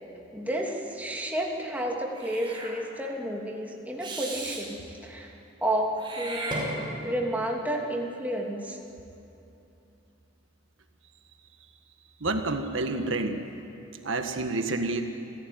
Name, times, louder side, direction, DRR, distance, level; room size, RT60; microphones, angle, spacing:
voice 1, 0.3-5.3 5.6-8.8, right 1 dB, 10° right, -1 dB, 2.8 m, -31 dB
Meow / Hiss, 2.1-2.7 4.0-4.6 6.0-7.2, right 1 dB, 25° right, 5.7 m, -35 dB
voice 2, 12.2-13.4 14.0-15.0, right 2 dB, 80° right, 6 dB, 1.6 m, -28 dB
29.0 x 16.0 x 9.5 m, 2.9 s
head